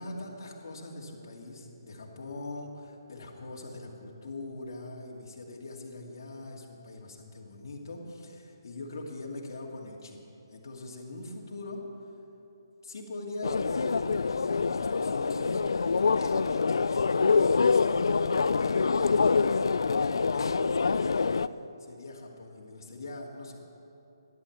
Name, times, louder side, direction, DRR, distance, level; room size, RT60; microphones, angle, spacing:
voice 1, 0.0-10.2 10.5-11.8 12.8-15.6 16.1-21.3 21.8-23.6, left 2 dB, 55° left, -2 dB, 2.5 m, -42 dB
sound 1, 13.4-21.5, left 4 dB, 80° left, 0.4 m, -25 dB
13.0 x 11.0 x 7.3 m, 2.8 s
hypercardioid pair, 170°, 2 cm